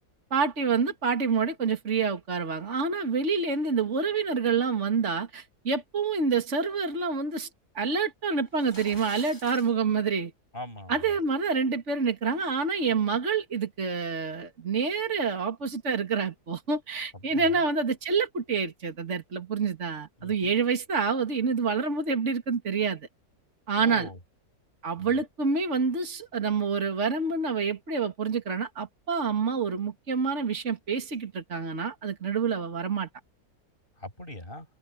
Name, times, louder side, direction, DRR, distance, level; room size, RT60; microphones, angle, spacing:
voice 1, 0.3-7.5 7.7-10.3 10.9-23.1 23.7-24.1 24.8-33.1, right 5 dB, 45° right, 2.5 m, -27 dB
sound 1, 8.5-9.7, left 1 dB, 15° left, 6.6 m, -47 dB
voice 2, 10.5-11.1 17.3-17.7 20.2-20.5 23.8-24.2 25.0-25.2 34.0-34.7, left 1 dB, 30° left, 7.1 m, -41 dB
omnidirectional pair, 1.7 m